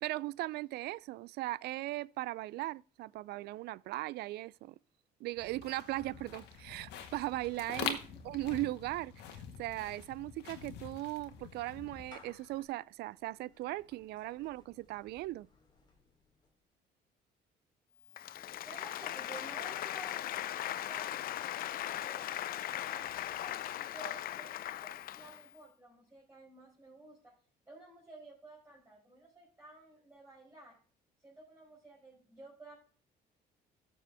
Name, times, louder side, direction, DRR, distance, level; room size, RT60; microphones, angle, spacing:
voice 1, 0.0-4.7 5.2-8.0 8.2-15.5, right 17 dB, 75° right, 0.4 m, -38 dB
sound 1, 5.4-12.6, left 8 dB, 85° left, 1.7 m, -45 dB
voice 2, 7.8-8.2 18.6-23.5 23.9-27.3 27.7-30.8 31.2-32.8, right 2 dB, 15° right, 5.0 m, -53 dB
Clapping / Meow, 10.5-16.6, left 4 dB, 25° left, 3.4 m, -64 dB
Applause, 18.1-25.5, left 12 dB, 60° left, 0.6 m, -39 dB
13.5 x 7.0 x 3.5 m
cardioid pair, 110°, 17 cm